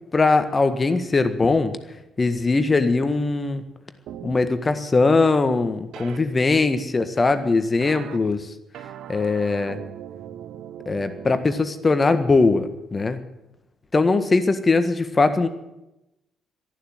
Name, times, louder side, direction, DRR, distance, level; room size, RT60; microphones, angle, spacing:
voice 1, 0.1-1.8 2.2-3.6 4.2-8.5 9.1-9.8 10.8-13.2 13.9-15.5, left 3 dB, 30° left, 10 dB, 1.6 m, -20 dB
sound 1, 4.1-4.4 5.9-6.2 7.8-8.2 8.7-11.6, right 10 dB, 60° right, 0.8 m, -39 dB
12.5 x 11.5 x 9.6 m, 0.93 s
figure-of-eight pair, 45°, 0 cm